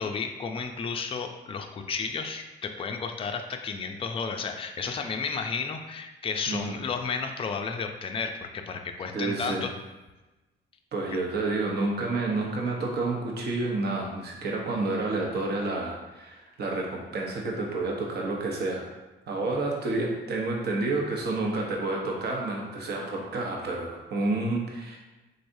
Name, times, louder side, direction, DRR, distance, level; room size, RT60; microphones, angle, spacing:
voice 1, 0.0-9.7, left 5 dB, 30° left, 4 dB, 0.4 m, -32 dB
voice 2, 6.5-6.8 9.1-9.7 10.9-18.9 19.3-25.0, right 2 dB, 55° right, -1 dB, 0.9 m, -29 dB
3.8 x 3.2 x 2.6 m, 1.1 s
cardioid pair, 90°, 20 cm